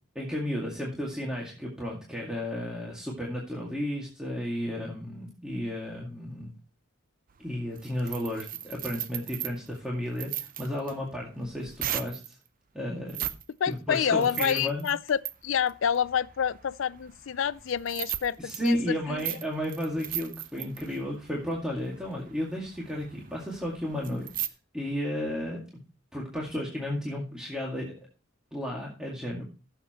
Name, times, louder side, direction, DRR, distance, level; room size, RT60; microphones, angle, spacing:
voice 1, 0.2-6.5 7.4-12.4 12.7-13.2 13.7-14.9 18.4-25.6 26.1-28.0 28.5-29.4, equal, 5° right, 2.1 m, -33 dB
sound 1, 7.3-12.3 13.0-13.4 13.7-24.5, right 11 dB, 45° right, 0.7 m, -38 dB
voice 2, 13.6-19.3, left 8 dB, 75° left, 0.4 m, -28 dB
16.5 x 7.2 x 3.0 m
head